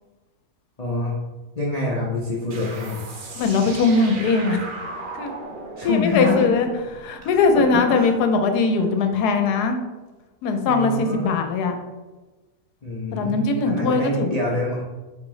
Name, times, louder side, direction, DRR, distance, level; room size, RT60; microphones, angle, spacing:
voice 1, 0.8-1.1 1.5-3.0 5.8-6.5 7.2-7.6 7.9-8.1 10.7-11.3 12.8-14.8, left 2 dB, 60° left, -5 dB, 0.4 m, -26 dB
sound 1, 2.5-7.8, right 3 dB, 70° right, 0.4 m, -37 dB
voice 2, 3.4-4.6 5.2-5.3 5.8-6.7 6.9-9.8 10.4-11.8 13.1-14.3, left 4 dB, 85° left, 5 dB, 1.2 m, -20 dB
4.4 x 3.5 x 3.1 m, 1.2 s
omnidirectional pair, 1.7 m